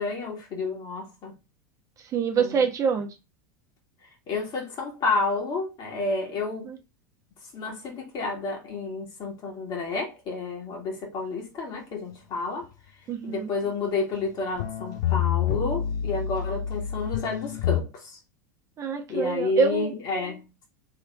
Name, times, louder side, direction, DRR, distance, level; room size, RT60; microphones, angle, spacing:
voice 1, 0.0-1.3 2.3-2.6 4.3-6.7 7.5-12.7 13.2-18.2 19.1-20.7, left 3 dB, 40° left, 2.0 m, -30 dB
voice 2, 2.0-3.1 6.7-6.8 13.1-13.5 18.8-19.9, right 6 dB, 30° right, 1.0 m, -25 dB
sound 1, 14.3-14.4 14.6-17.8, left 10 dB, 65° left, 0.8 m, -27 dB
3.6 x 3.5 x 3.5 m
figure-of-eight pair, 85°, 10 cm